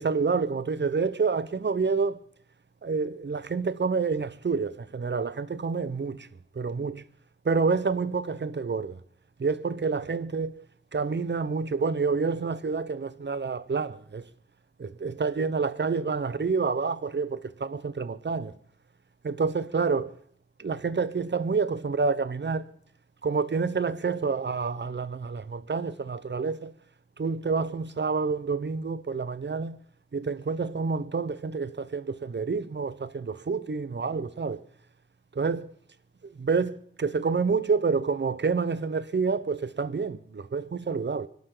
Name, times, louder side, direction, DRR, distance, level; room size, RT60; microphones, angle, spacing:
voice 1, 0.0-2.2 2.8-6.3 6.5-7.0 7.4-9.0 9.4-10.6 10.9-14.2 14.8-18.5 19.2-20.2 20.6-22.7 23.2-26.7 27.2-29.8 30.1-34.6 35.3-35.7 36.4-41.3, right 4 dB, 60° right, 0.9 m, -28 dB
25.5 x 12.5 x 3.9 m
wide cardioid pair, 55°, 21 cm